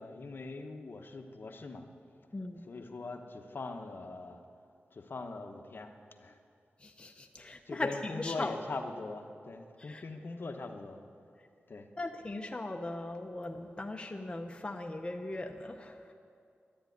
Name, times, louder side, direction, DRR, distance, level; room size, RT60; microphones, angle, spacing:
voice 1, 0.0-1.9 2.7-4.4 4.9-5.9 6.2-6.4 7.7-11.0 11.7-11.9, left 3 dB, 55° left, 5 dB, 1.0 m, -41 dB
voice 2, 2.3-2.6 6.8-8.5 9.8-10.0 12.0-16.1, left 2 dB, 25° left, 3 dB, 0.8 m, -39 dB
11.0 x 11.0 x 9.3 m, 2.4 s
wide cardioid pair, 105°, 4 cm